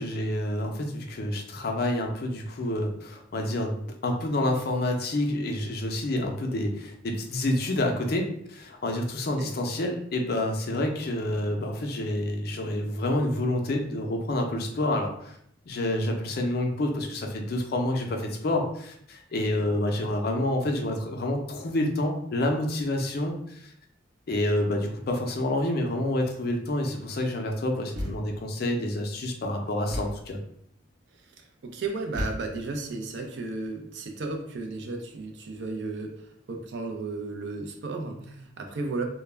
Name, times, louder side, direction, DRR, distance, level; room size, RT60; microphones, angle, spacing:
voice 1, 0.0-15.4 15.7-23.7 24.3-30.4, left 1 dB, 55° left, 2 dB, 0.4 m, -28 dB
Thump thud, 27.9-28.5 29.9-30.4 32.1-32.8, equal, 85° right, 0.8 m, -34 dB
voice 2, 31.6-36.1 36.5-39.0, right 3 dB, 65° right, 4 dB, 0.4 m, -34 dB
2.2 x 2.0 x 3.2 m, 0.69 s
head